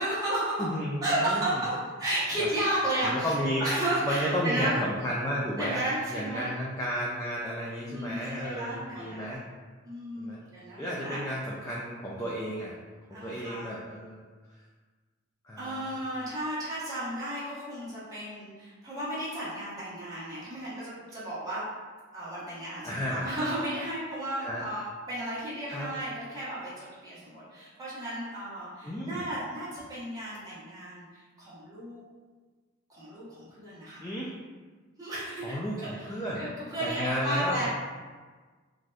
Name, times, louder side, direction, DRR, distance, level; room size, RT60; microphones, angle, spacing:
voice 1, 0.0-0.6 1.0-3.3 3.6-4.7 5.6-6.5 7.9-9.3 9.8-11.2 13.1-13.7 15.6-21.6 22.1-32.0 32.9-34.0 35.0-37.7, right 1 dB, 15° right, -10 dB, 1.0 m, -33 dB
voice 2, 0.6-1.6 2.4-2.5 3.0-3.6 4.0-5.8 6.1-9.4 10.2-10.4 10.8-12.7 13.1-14.2 15.4-15.9 22.8-23.3 24.4-24.6 25.7-25.9 28.8-29.2 34.0-34.3 35.4-36.4 36.8-37.6, equal, 15° left, -5 dB, 0.3 m, -32 dB
3.3 x 2.6 x 2.3 m, 1.4 s
head